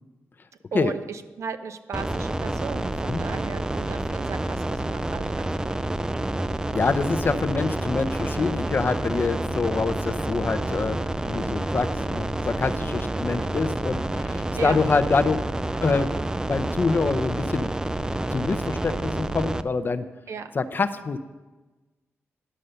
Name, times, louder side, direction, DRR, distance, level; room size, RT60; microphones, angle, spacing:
voice 1, 0.7-5.8 14.6-14.8 20.3-20.5, right 5 dB, 70° right, 10 dB, 0.7 m, -36 dB
sound 1, 1.9-19.6, right 1 dB, 15° right, 0.4 m, -28 dB
voice 2, 6.7-11.0 11.2-15.4 15.8-16.1 16.5-17.7 18.3-20.1 20.5-21.2, left 4 dB, 40° left, 10 dB, 0.6 m, -25 dB
11.5 x 5.5 x 6.6 m, 1.2 s
cardioid pair, 80°, 5 cm